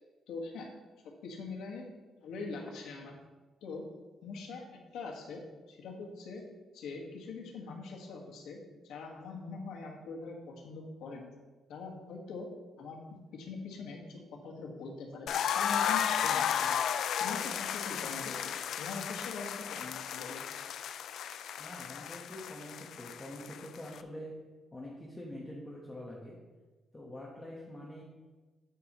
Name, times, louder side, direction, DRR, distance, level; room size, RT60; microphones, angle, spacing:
voice 1, 0.3-0.7 1.2-1.8 2.2-3.1 3.6-3.8 4.2-6.4 6.7-11.3 11.7-12.5 12.8-13.0 13.3-16.8 17.2-20.4, left 4 dB, 90° left, 0 dB, 1.6 m, -43 dB
sound 1, 15.3-24.0, left 9 dB, 65° left, 0.3 m, -34 dB
voice 2, 21.6-24.4 24.7-26.4 26.9-28.0, left 1 dB, 15° left, -4 dB, 1.1 m, -45 dB
8.9 x 8.2 x 3.0 m, 1.3 s
cardioid pair, 155°, 0 cm